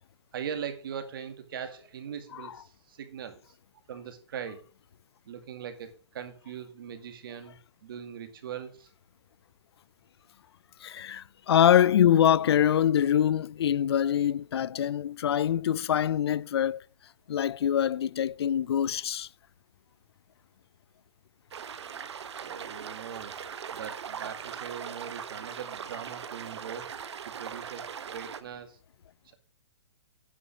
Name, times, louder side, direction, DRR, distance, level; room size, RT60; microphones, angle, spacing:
voice 1, 0.3-3.5 3.9-4.6 5.3-8.9 22.4-23.4 23.7-26.9 27.3-28.8, right 8 dB, 55° right, 2.1 m, -40 dB
voice 2, 10.8-16.8 17.3-19.3, left 10 dB, 65° left, 0.4 m, -24 dB
sound 1, 21.5-28.4, right 7 dB, 75° right, 1.1 m, -40 dB
9.8 x 5.4 x 7.4 m
hypercardioid pair, 170°, 14 cm